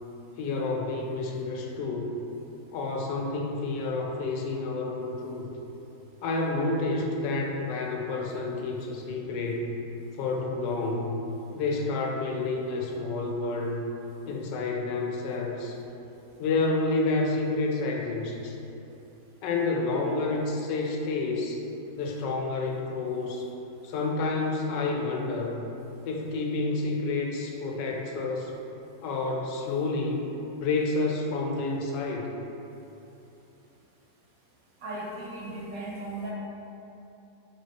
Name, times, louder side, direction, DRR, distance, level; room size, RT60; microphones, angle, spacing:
voice 1, 0.4-2.1 2.7-5.5 6.2-9.7 10.2-11.1 11.5-13.8 14.3-15.8 16.4-18.6 19.4-21.6 22.0-23.5 23.8-25.6 26.1-28.5 29.0-30.2 30.6-32.3, left 3 dB, 85° left, 0 dB, 1.2 m, -29 dB
voice 2, 34.8-36.3, right 2 dB, 70° right, -5 dB, 0.9 m, -36 dB
4.2 x 3.0 x 2.9 m, 2.9 s
omnidirectional pair, 1.9 m